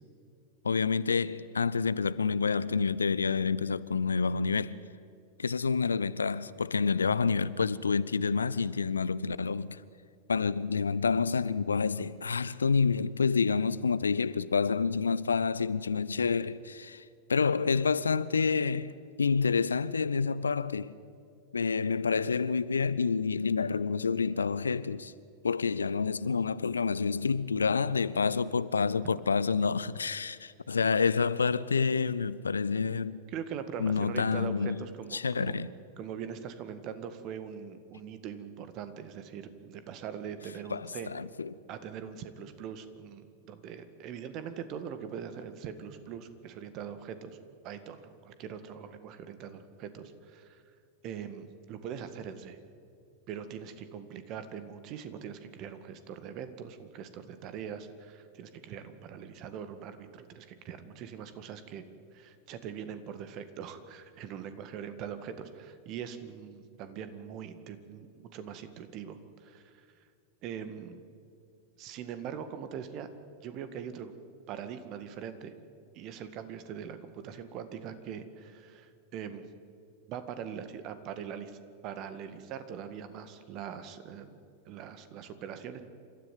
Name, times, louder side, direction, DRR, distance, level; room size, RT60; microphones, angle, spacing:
voice 1, 0.6-4.8 5.4-9.8 10.3-17.0 17.3-18.9 19.2-20.9 21.5-25.1 25.4-33.2 33.8-34.8 35.1-35.7 40.7-41.5, left 5 dB, 75° left, 0.6 m, -28 dB
voice 2, 33.3-35.6 36.0-41.1 41.7-47.4 47.6-50.6 51.0-52.6 53.3-61.8 62.1-69.8 70.4-71.0 71.8-73.1 73.4-74.1 74.5-75.5 75.9-79.5 80.1-81.6 81.8-85.8, right 8 dB, 40° right, 1.8 m, -42 dB
28.5 x 13.5 x 9.3 m
figure-of-eight pair, 90°, 0 cm